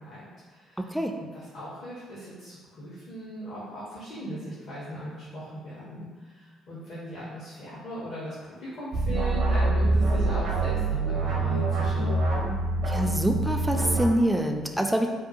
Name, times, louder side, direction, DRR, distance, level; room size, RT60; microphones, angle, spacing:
voice 1, 0.0-0.8 1.3-12.2, equal, 55° left, -8 dB, 0.7 m, -38 dB
voice 2, 0.8-1.2 12.9-15.1, right 1 dB, 5° right, 3 dB, 0.3 m, -25 dB
sound 1, 8.9-14.1, right 2 dB, 60° right, 0.6 m, -25 dB
2.7 x 2.3 x 2.6 m, 1.5 s
figure-of-eight pair, 45°, 0 cm